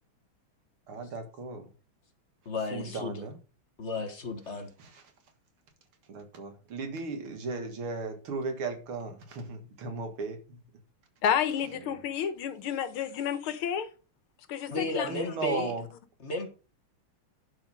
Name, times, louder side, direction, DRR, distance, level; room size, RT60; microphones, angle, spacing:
voice 1, 0.9-1.7 2.7-3.4 4.8-4.9 6.1-10.6 11.8-12.0 15.0-15.8, right 4 dB, 85° right, 2.6 m, -36 dB
voice 2, 2.4-3.3 3.8-4.7 14.7-15.7 16.2-16.5, left 3 dB, 40° left, 1.4 m, -33 dB
voice 3, 11.2-13.9 14.5-15.1, left 8 dB, 85° left, 1.9 m, -30 dB
11.5 x 4.9 x 5.4 m
omnidirectional pair, 2.3 m